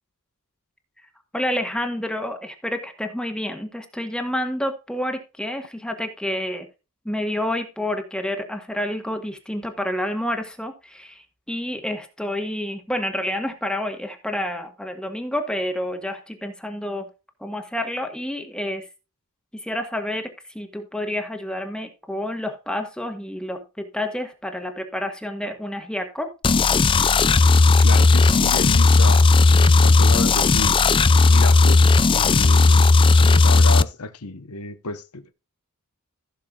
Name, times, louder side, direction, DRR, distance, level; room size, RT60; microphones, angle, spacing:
voice 1, 1.3-6.7 7.0-17.1 17.4-18.9 19.6-26.3, left 1 dB, 5° left, 1.5 m, -29 dB
sound 1, 26.4-33.8, left 3 dB, 25° left, 0.3 m, -15 dB
voice 2, 27.8-32.9 33.2-35.3, left 3 dB, 85° left, 1.2 m, -32 dB
15.5 x 6.5 x 2.5 m
head